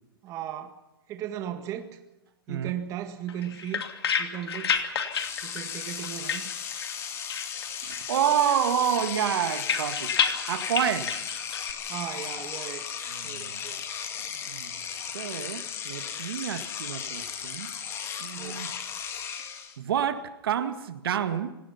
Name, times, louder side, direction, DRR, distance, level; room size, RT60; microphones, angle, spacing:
voice 1, 0.2-0.8 1.1-1.9 2.5-3.8 4.2-4.7 5.4-6.5 11.9-12.8 13.2-13.8 18.3-18.7, right 11 dB, 25° right, 6 dB, 1.8 m, -36 dB
sound 1, 3.3-7.0 7.3-8.2 8.5-11.7, left 7 dB, 90° left, 2.8 m, -31 dB
Engine / Domestic sounds home sounds, 4.7-4.8 5.1-19.8, left 8 dB, 20° left, 2.1 m, -36 dB
voice 2, 7.8-10.1 10.5-11.2 13.1-13.6 14.5-14.8 15.1-17.7 18.2-18.7 19.8-21.6, right 9 dB, 70° right, 9 dB, 1.9 m, -29 dB
26.5 x 19.0 x 5.8 m, 0.98 s
hypercardioid pair, 150°, 13 cm